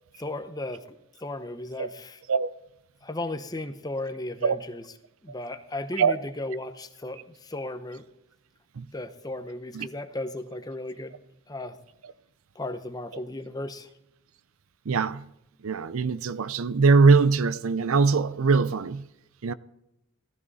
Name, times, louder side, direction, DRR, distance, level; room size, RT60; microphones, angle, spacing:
voice 1, 0.2-0.9 1.2-2.2 3.0-4.8 5.2-8.1 8.9-11.2 11.5-11.8 12.5-13.9, left 2 dB, 20° left, 0.7 m, -35 dB
voice 2, 14.9-15.2 15.6-19.1 19.4-19.5, right 4 dB, 75° right, 0.5 m, -22 dB
15.5 x 14.0 x 4.1 m
head